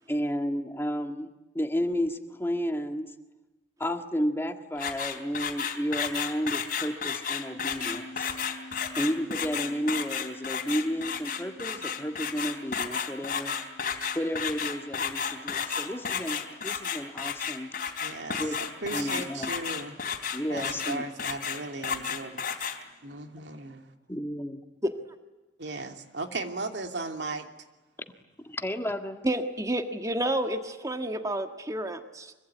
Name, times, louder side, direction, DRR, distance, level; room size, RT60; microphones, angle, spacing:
voice 1, 0.1-1.3 1.5-3.1 3.8-8.3 9.0-13.5 14.2-17.7 18.4-18.6 18.9-19.5 20.3-21.0 24.1-24.6 28.4-29.2, equal, 15° left, 6 dB, 1.7 m, -32 dB
sound 1, 4.8-22.8, left 7 dB, 50° left, 3.5 m, -32 dB
sound 2, 7.5-20.3, left 1 dB, 40° right, 6.8 m, -50 dB
voice 2, 18.0-20.0 20.5-22.6 23.0-23.8 25.6-27.5, right 3 dB, 75° right, 5 dB, 2.8 m, -36 dB
voice 3, 29.2-32.3, right 1 dB, 20° right, 6 dB, 1.6 m, -30 dB
25.0 x 24.0 x 9.3 m, 1.1 s
head